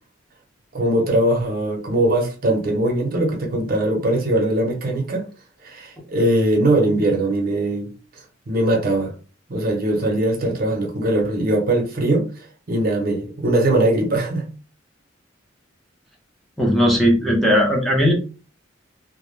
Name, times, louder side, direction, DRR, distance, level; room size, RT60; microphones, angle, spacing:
voice 1, 0.7-5.2 5.6-7.9 8.5-9.1 9.5-12.3 12.7-14.5, right 1 dB, 50° right, 0.6 m, -20 dB
voice 2, 16.6-18.1, equal, ahead, 0.5 m, -17 dB
2.1 x 2.0 x 3.1 m
head